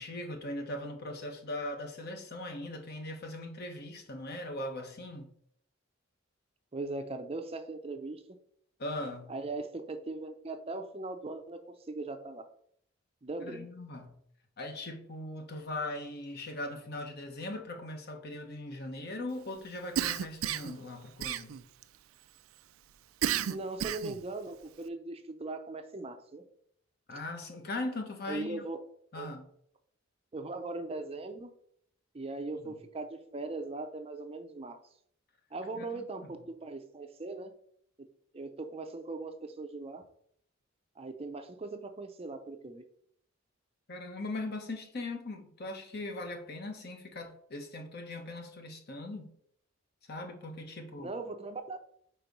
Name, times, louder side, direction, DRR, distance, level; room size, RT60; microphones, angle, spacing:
voice 1, 0.0-5.3 8.8-9.3 13.4-14.1 14.6-21.6 27.1-28.6 29.1-29.4 32.6-32.8 35.7-36.0 43.9-49.3 50.1-51.1, left 2 dB, 50° left, 1.0 m, -40 dB
voice 2, 6.7-8.2 9.3-11.6 11.9-12.5 13.2-13.7 23.5-26.4 28.3-28.8 29.2-29.3 30.3-31.5 32.1-34.8 35.5-37.5 38.0-38.1 38.3-40.0 41.0-42.8 51.0-51.8, right 3 dB, 30° right, 0.5 m, -39 dB
Cough, 20.0-20.8 21.2-21.8 23.2-24.2, right 9 dB, 80° right, 0.4 m, -32 dB
4.5 x 4.4 x 5.2 m
head